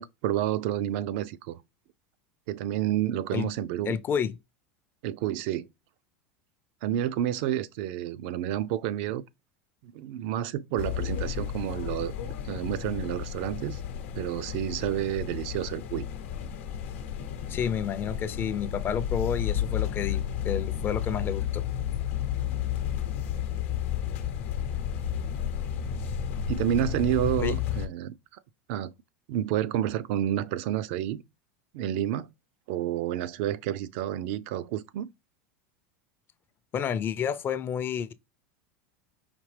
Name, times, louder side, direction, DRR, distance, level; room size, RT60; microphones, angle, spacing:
voice 1, 0.0-1.6 2.5-4.0 5.0-5.7 6.8-9.2 9.8-12.1 12.4-13.8 14.2-16.1 26.5-28.2 28.7-28.9 29.3-31.2 31.7-32.3 32.7-35.1, right 11 dB, 65° right, 0.4 m, -29 dB
voice 2, 3.9-4.3 17.5-21.6 27.4-27.6 36.7-38.1, left 7 dB, 30° left, 0.4 m, -30 dB
sound 1, 10.8-27.9, left 9 dB, 80° left, 0.8 m, -32 dB
5.1 x 2.8 x 3.2 m
supercardioid pair, 110°, 7 cm